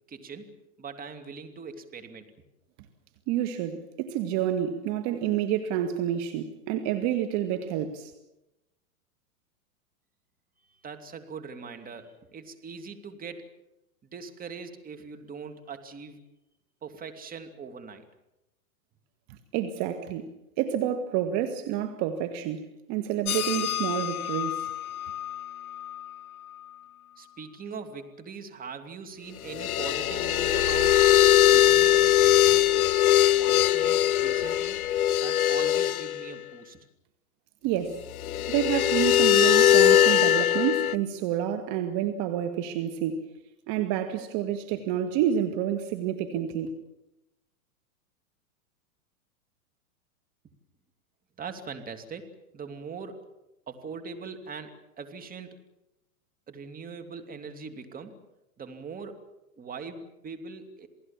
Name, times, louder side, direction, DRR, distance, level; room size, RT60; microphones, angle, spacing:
voice 1, 0.1-0.5 0.8-2.3 10.7-13.5 14.1-16.3 16.8-18.0 27.2-31.1 31.4-33.0 33.3-34.8 35.2-36.9 51.4-53.3 53.7-55.5 56.5-58.1 58.6-59.2 59.6-60.9, right 5 dB, 20° right, 2.8 m, -41 dB
voice 2, 3.3-8.1 19.3-20.3 20.6-24.7 37.6-38.0 38.5-43.3 43.7-46.7, right 10 dB, 40° right, 2.0 m, -29 dB
sound 1, 23.3-25.4 25.8-25.9 29.5-36.2 38.2-40.9, left 12 dB, 70° left, 1.0 m, -21 dB
28.0 x 19.0 x 7.4 m
hypercardioid pair, 125°, 44 cm